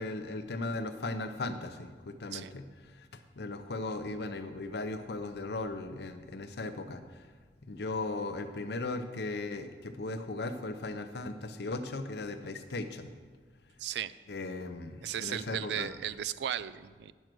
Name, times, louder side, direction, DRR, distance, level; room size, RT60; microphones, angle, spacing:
voice 1, 0.0-7.0 7.6-13.1 14.3-15.9, left 2 dB, 65° left, 8 dB, 0.7 m, -37 dB
voice 2, 13.8-14.1 15.0-17.1, right 10 dB, 65° right, 17 dB, 0.3 m, -36 dB
9.0 x 6.3 x 6.1 m, 1.5 s
head